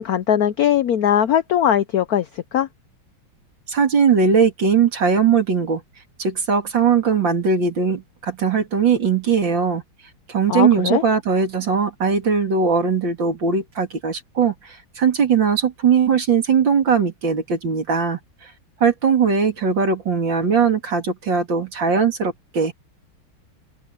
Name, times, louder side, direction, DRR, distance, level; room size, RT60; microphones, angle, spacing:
voice 1, 0.0-2.7 10.5-11.0, left 10 dB, 70° left, 0.9 m, -20 dB
voice 2, 3.7-5.8 6.2-9.8 10.3-18.5 18.8-22.7, right 6 dB, 60° right, 3.5 m, -19 dB
open air
omnidirectional pair, 2.3 m